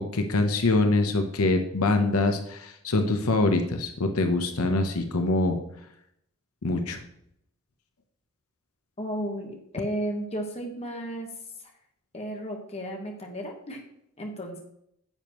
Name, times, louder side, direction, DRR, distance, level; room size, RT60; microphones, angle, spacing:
voice 1, 0.0-5.6 6.6-7.0, left 2 dB, 80° left, 6 dB, 0.9 m, -24 dB
voice 2, 9.0-11.3 12.1-13.8 14.2-14.6, equal, 30° left, 2 dB, 1.4 m, -33 dB
9.7 x 7.0 x 3.1 m, 0.75 s
head